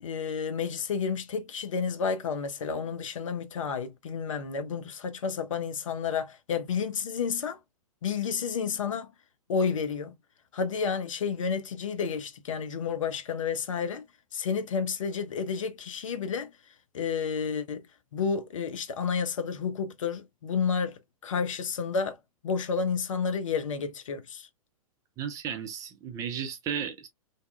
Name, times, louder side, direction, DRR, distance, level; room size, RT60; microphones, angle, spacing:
voice 1, 0.0-7.6 8.0-9.1 9.5-10.1 10.5-14.0 14.3-16.5 16.9-17.8 18.1-20.9 21.2-22.2 22.4-24.5, left 6 dB, 60° left, 0.6 m, -30 dB
voice 2, 25.2-27.1, right 8 dB, 20° right, 0.3 m, -34 dB
2.7 x 2.2 x 2.2 m
figure-of-eight pair, 105°, 19 cm